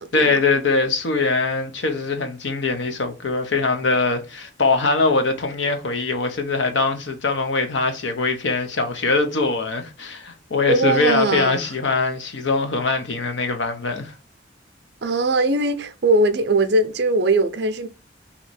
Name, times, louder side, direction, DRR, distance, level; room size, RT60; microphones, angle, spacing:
voice 1, 0.1-14.1, left 3 dB, 70° left, 0.8 m, -22 dB
voice 2, 10.7-11.7 15.0-17.9, right 2 dB, 55° right, 0.5 m, -20 dB
3.0 x 2.8 x 4.1 m
head